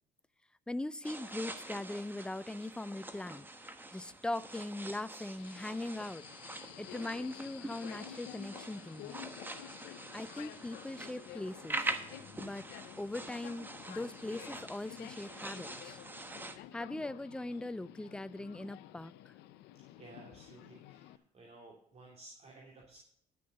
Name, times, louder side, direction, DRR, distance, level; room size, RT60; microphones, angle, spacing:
voice 1, 0.7-3.5 3.9-6.3 6.8-9.2 10.1-11.8 12.4-12.7 13.0-16.0 16.7-19.3, left 2 dB, 5° left, 15 dB, 0.5 m, -40 dB
sound 1, 1.0-16.6, right 2 dB, 10° right, 1.2 m, -45 dB
Subway metro underground, 5.4-21.2, left 13 dB, 90° left, 0.6 m, -51 dB
voice 2, 20.0-23.0, right 2 dB, 40° right, -1 dB, 2.8 m, -55 dB
11.0 x 6.8 x 6.5 m, 0.64 s
cardioid pair, 110°, 17 cm